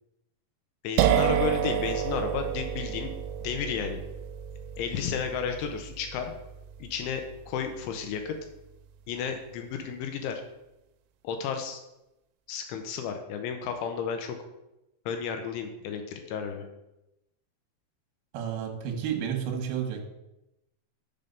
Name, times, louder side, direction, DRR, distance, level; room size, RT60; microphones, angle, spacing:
voice 1, 0.8-3.1 3.4-4.0 4.8-6.3 6.8-8.4 9.1-10.4 11.2-11.8 12.5-14.4 15.1-16.6, left 6 dB, 80° left, 5 dB, 3.0 m, -32 dB
sound 1, 1.0-8.5, right 9 dB, 85° right, 2.8 m, -30 dB
voice 2, 18.3-20.0, right 8 dB, 70° right, 1 dB, 2.5 m, -31 dB
6.7 x 5.6 x 5.2 m, 0.91 s
omnidirectional pair, 5.7 m